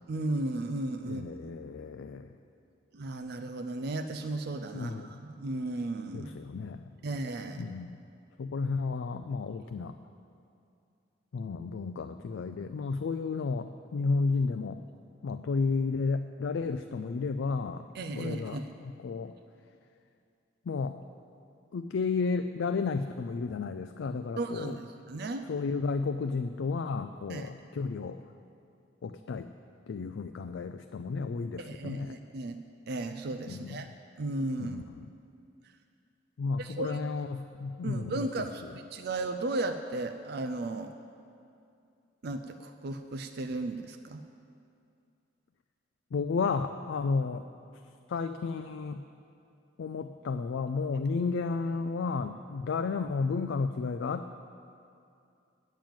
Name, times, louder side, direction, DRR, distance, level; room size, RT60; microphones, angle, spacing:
voice 1, 0.1-1.6 2.9-6.3 7.0-7.6 17.9-18.7 24.4-25.5 27.3-27.5 31.6-32.6 32.9-33.9 34.2-34.8 36.6-37.0 37.8-38.6 38.9-40.9 42.2-44.2, right 2 dB, 55° right, 6 dB, 0.4 m, -35 dB
voice 2, 1.0-2.3 4.7-5.1 6.1-6.8 7.6-8.0 8.4-10.0 11.3-14.8 15.2-17.9 18.2-18.6 19.0-19.3 20.7-21.0 21.7-24.8 25.5-28.2 29.0-29.5 29.9-32.2 33.5-33.9 34.6-35.1 36.4-38.3 46.1-47.5 48.1-49.0 49.8-54.3, left 4 dB, 75° left, 8 dB, 0.4 m, -32 dB
9.1 x 7.5 x 8.8 m, 2.5 s
head